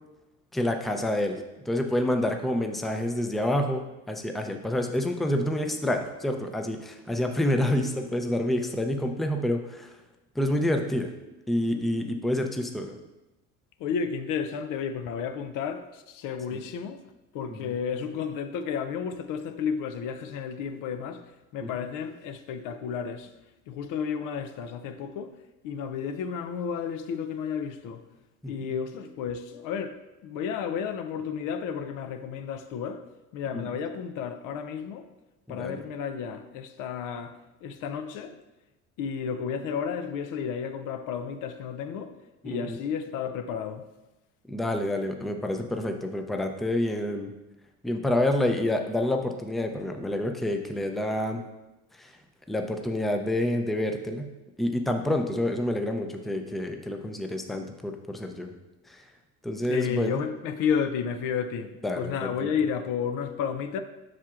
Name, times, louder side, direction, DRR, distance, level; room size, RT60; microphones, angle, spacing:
voice 1, 0.5-1.4 1.7-9.9 10.4-11.1 11.5-13.0 16.5-16.6 17.5-17.7 21.6-21.7 28.4-28.7 33.5-33.7 35.5-35.8 42.4-42.8 44.5-47.3 47.8-51.4 52.0-52.1 52.5-54.3 54.6-58.5 58.9-59.0 59.4-60.2 61.8-62.5, left 1 dB, ahead, 0.5 m, -28 dB
voice 2, 13.8-17.0 17.3-23.3 23.7-25.4 25.6-28.0 28.5-33.1 33.3-35.1 35.5-38.4 39.0-42.2 42.4-43.9 59.7-63.8, left 7 dB, 75° left, 0.6 m, -32 dB
7.4 x 5.8 x 2.4 m
cardioid pair, 105°, 32 cm